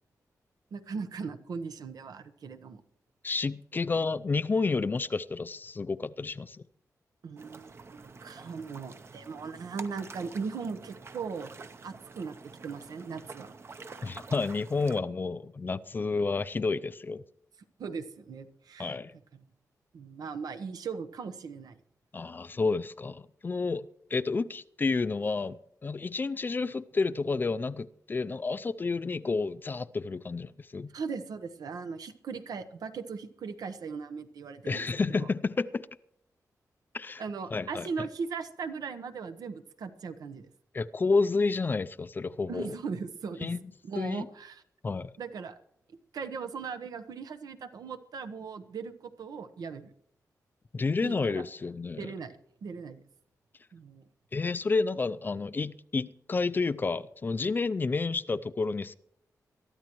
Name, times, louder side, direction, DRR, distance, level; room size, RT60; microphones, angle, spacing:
voice 1, 0.7-2.8 7.2-11.5 11.8-12.4 12.6-13.5 17.8-18.9 19.3-19.4 19.9-21.7 30.9-34.9 35.1-35.3 37.2-40.5 42.5-43.5 43.8-44.6 45.2-45.6 45.9-49.9 51.0-51.4 52.0-52.4 52.6-53.0 53.7-54.1, right 5 dB, 85° right, 1.0 m, -38 dB
voice 2, 3.2-6.6 14.0-17.2 18.8-19.2 22.1-30.9 34.6-35.9 36.9-37.2 37.5-38.1 40.7-42.8 43.4-43.7 44.0-44.3 44.8-45.1 50.7-52.1 54.3-58.9, left 4 dB, 30° left, 0.4 m, -30 dB
sound 1, 7.4-15.0, right 4 dB, 40° right, 0.8 m, -48 dB
22.5 x 13.0 x 3.1 m
wide cardioid pair, 130°, 6 cm